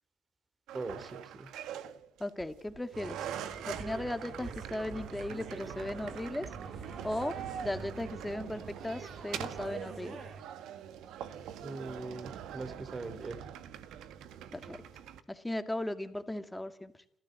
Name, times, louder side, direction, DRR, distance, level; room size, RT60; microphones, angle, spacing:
voice 1, 0.7-1.5 11.6-13.4, right 3 dB, 35° right, 12 dB, 3.2 m, -41 dB
sound 1, 0.7-15.2, right 9 dB, 85° right, 1.6 m, -44 dB
voice 2, 2.2-3.3 3.7-6.5 7.0-7.4 7.6-10.2 14.5-14.8 15.3-16.9, left 1 dB, 10° left, 9 dB, 2.2 m, -37 dB
sound 2, 2.9-10.4, right 6 dB, 70° right, 2.9 m, -45 dB
29.0 x 14.5 x 7.8 m, 0.69 s
cardioid pair, 90°, 0 cm